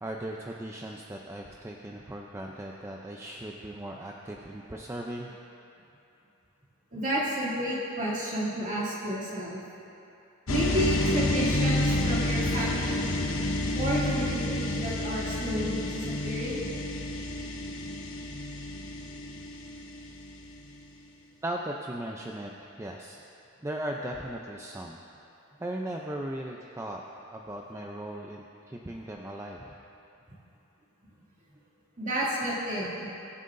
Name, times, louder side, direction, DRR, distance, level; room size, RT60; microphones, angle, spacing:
voice 1, 0.0-5.3 21.4-23.2 23.6-25.0 25.6-27.0 27.3-29.8, right 1 dB, 15° right, 0 dB, 0.5 m, -37 dB
voice 2, 6.9-9.6 10.5-13.1 13.7-16.6 32.0-33.1, equal, 40° right, -7 dB, 2.5 m, -31 dB
sound 1, 10.5-20.5, left 1 dB, 70° left, 0.9 m, -29 dB
21.0 x 7.7 x 2.6 m, 2.8 s
head